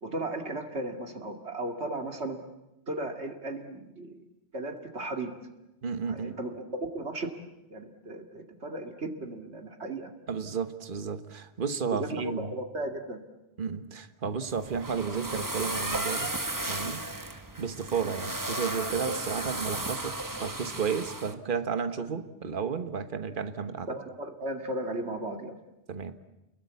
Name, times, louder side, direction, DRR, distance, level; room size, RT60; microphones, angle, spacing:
voice 1, 0.0-2.4 2.9-4.2 4.5-5.3 6.1-7.3 7.7-10.1 11.9-13.2 18.0-18.1 23.9-25.6, right 2 dB, 75° right, 2.6 m, -35 dB
voice 2, 5.8-6.4 10.3-12.5 13.6-16.3 16.6-17.0 17.6-23.9 25.9-26.3, right 6 dB, 50° right, 1.4 m, -32 dB
sound 1, 14.5-21.3, right 2 dB, 15° right, 1.3 m, -34 dB
29.5 x 21.5 x 8.3 m
omnidirectional pair, 1.1 m